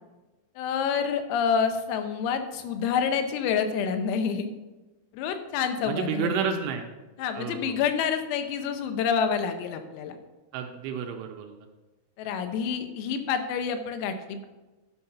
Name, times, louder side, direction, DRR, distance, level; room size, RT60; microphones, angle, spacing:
voice 1, 0.6-4.5 5.1-6.5 7.2-10.2 12.2-14.5, left 6 dB, 90° left, 7 dB, 3.6 m, -28 dB
voice 2, 5.9-6.8 7.4-7.8 10.5-11.6, right 7 dB, 85° right, 3 dB, 3.0 m, -30 dB
12.0 x 5.6 x 5.8 m, 1.1 s
omnidirectional pair, 5.9 m